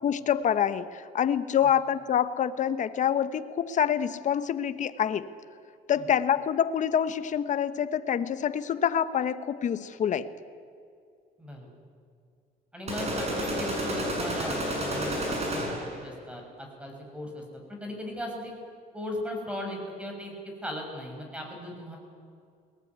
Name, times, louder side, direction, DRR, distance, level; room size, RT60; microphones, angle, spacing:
voice 1, 0.0-5.3 5.9-10.3, left 9 dB, 45° left, 12 dB, 1.1 m, -26 dB
voice 2, 11.4-11.7 12.7-18.6 18.9-22.0, left 1 dB, 5° right, 2 dB, 6.3 m, -38 dB
sound 1, 12.9-16.0, equal, 40° right, 7.2 m, -30 dB
22.0 x 19.0 x 9.5 m, 2.3 s
cardioid pair, 110°, 17 cm